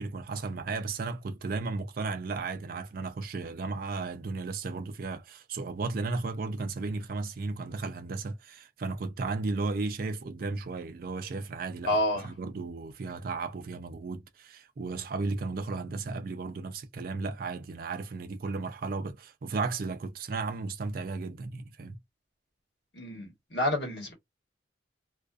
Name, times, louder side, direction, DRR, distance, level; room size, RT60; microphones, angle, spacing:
voice 1, 0.0-22.0, right 3 dB, 50° right, 0.3 m, -34 dB
voice 2, 11.9-12.3 22.9-24.1, left 1 dB, 60° left, 1.2 m, -29 dB
2.3 x 2.3 x 2.4 m
head